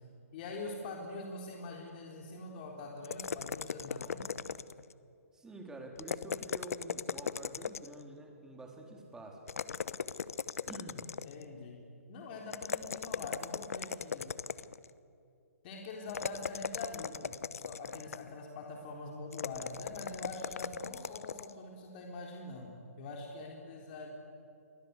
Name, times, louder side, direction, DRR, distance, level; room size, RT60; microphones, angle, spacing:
voice 1, 0.3-4.3 11.2-11.8 12.1-14.3 15.6-24.1, left 2 dB, 40° left, 0 dB, 3.9 m, -44 dB
sound 1, 3.0-4.9 6.0-8.0 9.5-11.5 12.5-14.9 16.1-18.3 19.3-21.5, left 6 dB, 70° left, 0.9 m, -38 dB
voice 2, 5.3-9.4 10.7-11.1, right 2 dB, 5° right, 2 dB, 3.8 m, -48 dB
30.0 x 23.0 x 8.3 m, 2.6 s
hypercardioid pair, 140°, 8 cm